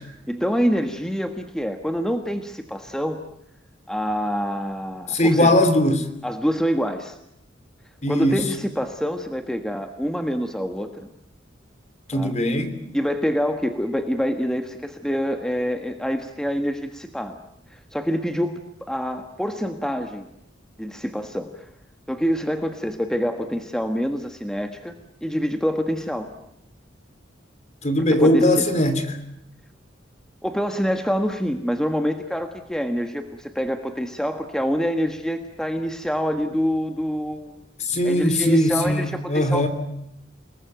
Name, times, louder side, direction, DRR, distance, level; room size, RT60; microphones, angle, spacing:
voice 1, 0.3-3.2 3.9-5.5 6.2-7.2 8.1-11.1 12.1-12.3 12.9-17.4 17.7-20.2 20.8-21.6 22.1-25.0 25.2-26.3 28.1-28.7 30.4-37.6 38.0-39.7, equal, 5° left, 6 dB, 1.5 m, -26 dB
voice 2, 5.1-6.0 8.0-8.4 12.1-12.8 27.8-29.2 37.8-39.7, left 1 dB, 40° left, 10 dB, 3.0 m, -20 dB
29.5 x 20.0 x 9.3 m, 0.79 s
head